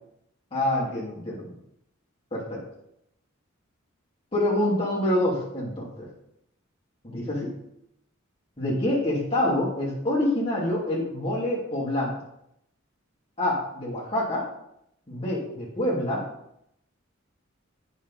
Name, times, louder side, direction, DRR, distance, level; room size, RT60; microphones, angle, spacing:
voice 1, 0.5-1.5 2.3-2.6 4.3-6.1 7.0-7.5 8.6-12.1 13.4-14.4 15.1-16.2, left 1 dB, 25° left, -6 dB, 2.6 m, -26 dB
8.7 x 5.6 x 4.2 m, 0.78 s
head